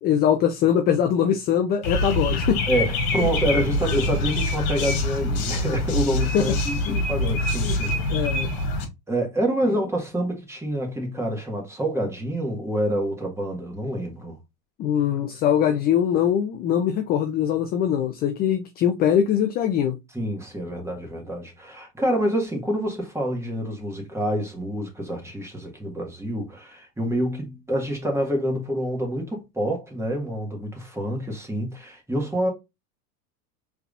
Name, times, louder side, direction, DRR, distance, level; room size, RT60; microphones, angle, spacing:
voice 1, 0.0-2.6 3.2-3.3 6.3-6.4 6.9-7.0 7.6-7.8 8.1-8.5 14.8-20.0, left 9 dB, 25° left, 0.3 m, -22 dB
sound 1, 1.8-8.8, left 1 dB, 50° left, 1.9 m, -25 dB
voice 2, 2.7-7.9 9.1-14.4 20.1-32.5, right 1 dB, 5° right, 1.6 m, -27 dB
4.7 x 3.4 x 2.4 m
supercardioid pair, 120°, 47 cm